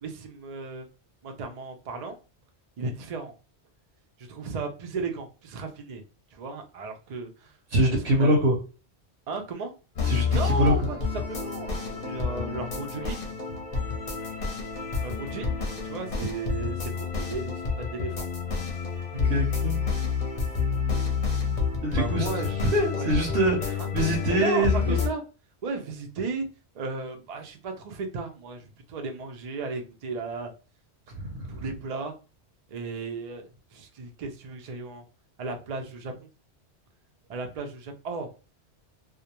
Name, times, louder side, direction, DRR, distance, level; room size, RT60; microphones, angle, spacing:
voice 1, 0.0-0.9 1.2-2.2 2.8-3.3 4.2-6.0 6.3-7.5 7.8-8.4 9.3-9.7 10.3-13.2 15.0-15.5 15.8-18.3 21.9-22.6 23.0-23.1 23.8-23.9 24.4-25.2 25.6-26.5 26.7-30.5 31.5-32.1 32.7-35.0 35.4-36.1 37.3-38.3, right 4 dB, 55° right, 4 dB, 0.4 m, -35 dB
voice 2, 7.7-8.6 10.0-10.7 19.3-19.7 21.8-22.3 22.6-25.0 31.4-31.6, right 1 dB, 75° right, 1 dB, 0.9 m, -24 dB
sound 1, 10.0-25.1, left 5 dB, 45° left, 0.6 m, -29 dB
2.3 x 2.1 x 2.8 m, 0.33 s
omnidirectional pair, 1.1 m